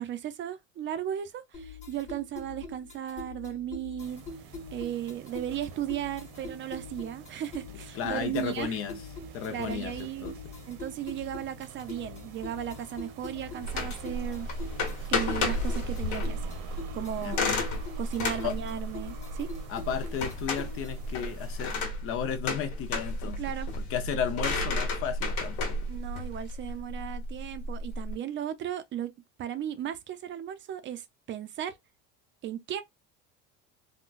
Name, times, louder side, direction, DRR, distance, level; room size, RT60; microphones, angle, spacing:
voice 1, 0.0-4.2 4.7-8.8 9.5-10.4 10.7-14.5 15.1-16.5 16.9-17.4 18.0-19.5 23.4-23.7 25.9-29.1 29.4-31.8 32.4-32.8, right 10 dB, 40° right, 0.5 m, -35 dB
sound 1, 1.5-21.1, left 4 dB, 25° left, 1.4 m, -44 dB
sound 2, 4.0-21.8, right 7 dB, 80° right, 1.0 m, -49 dB
voice 2, 7.9-9.0 9.3-10.4 17.2-17.5 18.4-18.5 19.7-21.7 22.0-23.4 23.9-25.8, left 8 dB, 50° left, 0.7 m, -33 dB
sound 3, 13.6-28.1, left 2 dB, 75° left, 1.3 m, -32 dB
3.8 x 2.2 x 2.4 m
cardioid pair, 130°, 29 cm